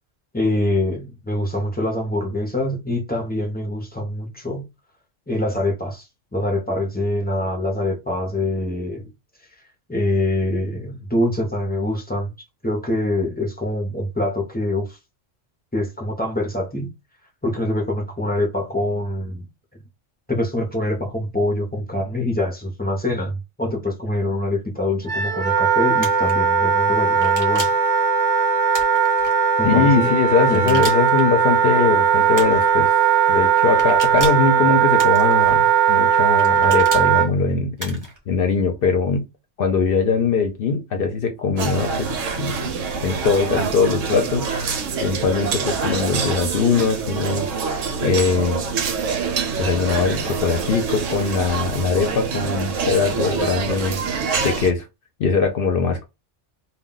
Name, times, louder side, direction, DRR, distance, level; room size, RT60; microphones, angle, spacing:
voice 1, 0.3-4.7 5.3-9.1 9.9-12.3 12.6-15.0 15.7-16.9 17.4-19.5 20.3-27.7 29.6-30.1 30.5-30.8, left 1 dB, 15° left, 0.4 m, -24 dB
Wind instrument woodwind instrument, 25.1-37.3, right 7 dB, 55° right, 0.5 m, -18 dB
sound 1, 26.0-26.3 27.2-27.9 28.7-29.3 30.5-31.2 32.3-32.7 33.8-34.5 35.0-35.5 36.4-37.1 37.8-38.2, equal, 20° right, 0.7 m, -33 dB
voice 2, 29.6-32.9 33.3-39.3 39.6-42.7 43.0-44.7 45.0-48.6 49.6-54.9 55.2-56.1, left 5 dB, 60° left, 0.7 m, -21 dB
sound 2, 41.6-54.7, right 5 dB, 85° right, 1.0 m, -26 dB
2.2 x 2.2 x 3.7 m
omnidirectional pair, 1.3 m